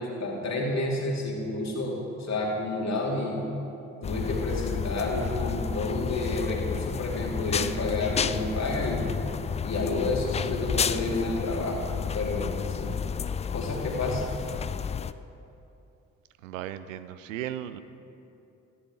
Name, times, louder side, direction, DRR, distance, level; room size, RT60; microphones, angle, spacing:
voice 1, 0.0-3.4 4.0-9.1 9.6-11.8 12.1-12.9 13.5-14.2, left 2 dB, 45° left, -1 dB, 2.9 m, -30 dB
sound 1, 4.0-15.1, left 7 dB, 20° left, 0.3 m, -31 dB
voice 2, 16.4-17.8, right 12 dB, 75° right, 14 dB, 0.6 m, -36 dB
19.0 x 14.0 x 3.8 m, 2.8 s
figure-of-eight pair, 40°, 39 cm